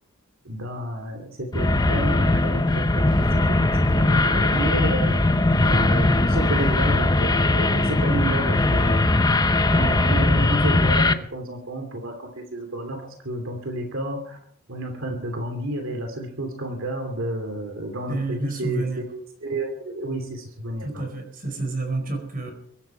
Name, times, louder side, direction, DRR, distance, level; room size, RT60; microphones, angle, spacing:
voice 1, 0.4-5.2 5.7-9.1 9.7-14.4 14.7-18.9 19.1-21.0, right 1 dB, 65° right, 4 dB, 2.8 m, -31 dB
sound 1, 1.5-11.1, left 2 dB, 20° left, 0.8 m, -20 dB
sound 2, 5.5-8.6 10.2-10.5, left 1 dB, 45° left, 5.7 m, -37 dB
voice 2, 18.1-19.0 20.8-22.5, right 2 dB, 40° right, 5 dB, 4.7 m, -29 dB
23.5 x 12.0 x 4.5 m, 0.65 s
head